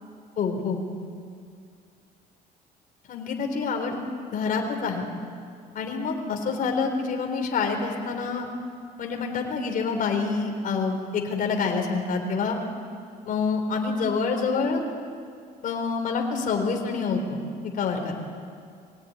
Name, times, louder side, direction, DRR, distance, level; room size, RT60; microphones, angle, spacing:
voice 1, 0.4-0.8 3.1-4.0 4.3-5.1 5.7-8.5 9.0-12.6 13.3-14.8 15.6-17.4 17.7-18.1, left 5 dB, 55° left, 3 dB, 3.8 m, -27 dB
23.0 x 16.5 x 9.6 m, 2.3 s
cardioid pair, 110°, 17 cm